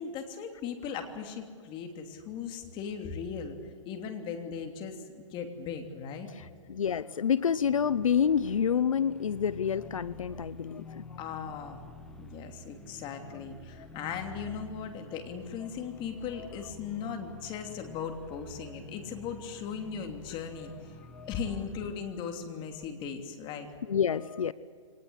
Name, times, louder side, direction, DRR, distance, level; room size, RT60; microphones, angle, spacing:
voice 1, 0.0-3.6 3.8-5.0 5.3-6.3 11.2-11.8 12.2-23.7, left 6 dB, 30° left, 5 dB, 3.1 m, -38 dB
voice 2, 6.7-11.2 21.1-21.3 23.9-24.5, left 7 dB, 90° left, 17 dB, 0.7 m, -28 dB
sound 1, 7.3-22.1, equal, 5° left, 1.7 m, -49 dB
24.0 x 19.5 x 8.2 m, 2.2 s
hypercardioid pair, 135°, 17 cm